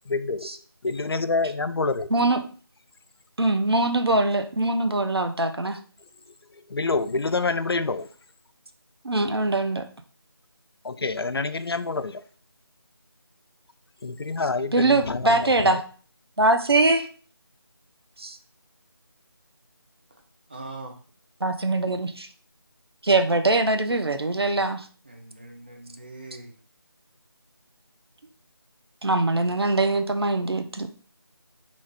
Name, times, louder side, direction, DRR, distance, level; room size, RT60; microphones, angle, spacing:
voice 1, 0.1-0.5 0.8-2.1 6.7-8.1 10.8-12.2 14.0-15.8, left 3 dB, 70° left, 12 dB, 0.4 m, -27 dB
voice 2, 2.1-2.4 3.4-5.8 9.0-9.8 14.7-15.8 16.4-17.1 18.2-18.4 21.4-22.3 23.0-24.9 29.0-30.9, right 2 dB, 75° right, 7 dB, 0.6 m, -22 dB
voice 3, 20.5-21.0 25.0-26.5, right 2 dB, 25° right, 1 dB, 0.5 m, -41 dB
3.9 x 2.4 x 3.5 m, 0.41 s
figure-of-eight pair, 165°, 13 cm